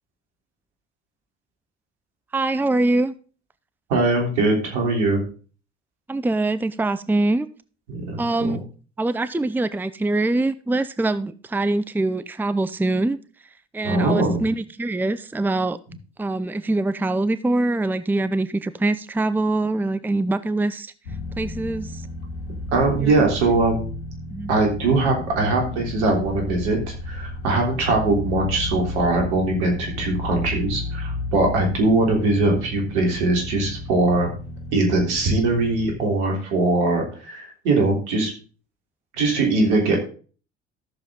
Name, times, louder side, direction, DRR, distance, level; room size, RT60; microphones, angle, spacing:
voice 1, 2.3-3.1 6.1-7.5 8.2-8.6 9.0-13.2 13.7-15.8 16.2-20.9 21.4-22.0 23.0-23.1 24.3-24.5, right 2 dB, 5° right, 14 dB, 0.6 m, -23 dB
voice 2, 3.9-5.2 7.9-8.6 13.8-14.4 22.7-23.9 24.5-34.3 34.7-38.3 39.1-40.0, right 2 dB, 75° right, 1 dB, 3.5 m, -21 dB
sound 1, 21.1-35.9, left 2 dB, 80° left, 2.2 m, -33 dB
13.5 x 7.1 x 3.8 m, 0.38 s
hypercardioid pair, 55°, 34 cm